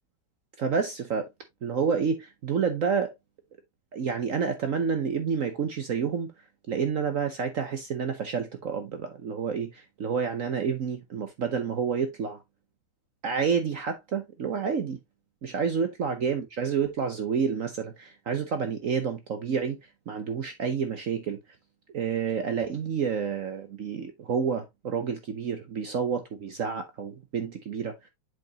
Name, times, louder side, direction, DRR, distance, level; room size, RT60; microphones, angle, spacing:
voice 1, 0.6-1.3 1.6-3.1 3.9-6.3 6.7-12.4 13.2-15.0 15.4-19.8 20.1-21.4 21.9-28.0, right 6 dB, 55° right, 0.9 m, -29 dB
7.7 x 5.1 x 2.9 m
omnidirectional pair, 2.2 m